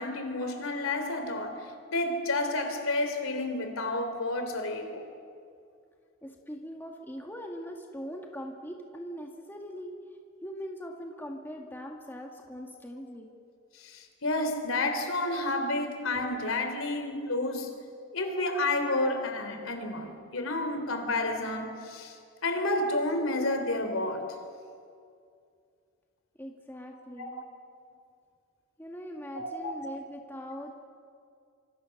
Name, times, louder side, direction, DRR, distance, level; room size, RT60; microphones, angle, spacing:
voice 1, 0.0-5.0 13.7-17.7 18.1-22.2 22.4-24.3 27.2-27.3 29.3-29.7, left 2 dB, 75° left, 6 dB, 3.3 m, -30 dB
voice 2, 6.2-9.9 10.4-13.3 26.4-27.4 28.8-30.8, equal, 10° left, 1 dB, 1.8 m, -41 dB
26.0 x 25.0 x 6.6 m, 2.4 s
head